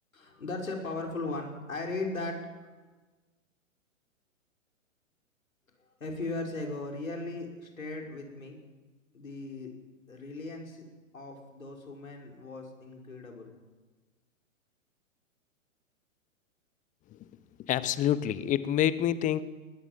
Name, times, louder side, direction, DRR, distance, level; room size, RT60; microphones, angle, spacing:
voice 1, 0.1-2.7 6.0-8.6 9.1-9.7 10.1-10.8 11.1-13.5, left 2 dB, 80° left, 1 dB, 6.2 m, -37 dB
voice 2, 17.6-19.4, left 11 dB, 20° left, 17 dB, 1.0 m, -27 dB
21.0 x 20.5 x 7.6 m, 1.3 s
figure-of-eight pair, 115°, 41 cm